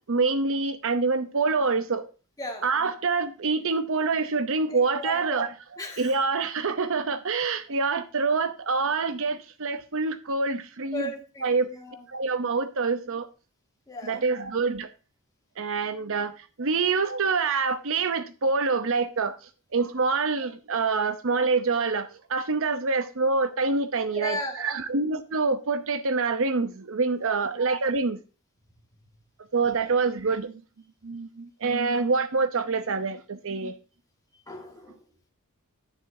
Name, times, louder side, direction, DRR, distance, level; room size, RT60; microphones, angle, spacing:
voice 1, 0.1-2.0 2.6-5.5 6.0-11.1 11.4-11.7 12.1-13.3 14.0-14.9 15.6-16.3 16.6-19.3 19.7-28.2 29.5-30.5 31.0-33.7, right 4 dB, 60° right, 0.8 m, -26 dB
voice 2, 2.4-2.7 4.7-5.5 5.8-6.1 10.9-12.1 13.9-14.3 24.1-24.8 27.2-27.5 34.5-34.9, left 1 dB, 15° left, 2.0 m, -36 dB
10.5 x 9.5 x 2.7 m
head